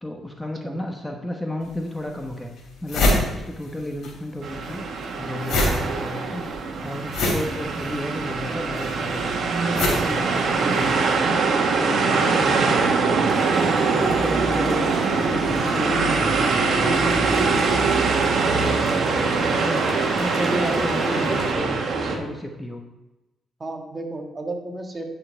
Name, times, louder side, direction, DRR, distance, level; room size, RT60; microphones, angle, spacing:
voice 1, 0.0-9.3 9.7-11.4 11.7-14.9 15.2-17.5 18.4-19.9 20.2-22.8, left 1 dB, 10° left, 3 dB, 1.1 m, -33 dB
sound 1, 1.6-1.7 2.3-2.4 2.6-4.1 4.4-11.0, left 1 dB, 65° left, 3.5 m, -25 dB
sound 2, 4.4-22.2, right 4 dB, 55° right, 1.5 m, -22 dB
sound 3, 13.3-21.5, left 3 dB, 50° left, 1.4 m, -37 dB
voice 2, 18.4-18.9 20.4-21.5 22.0-22.3 23.6-25.1, right 2 dB, 25° right, 2 dB, 1.7 m, -32 dB
10.0 x 6.6 x 4.6 m, 1.0 s
cardioid pair, 90°, 0 cm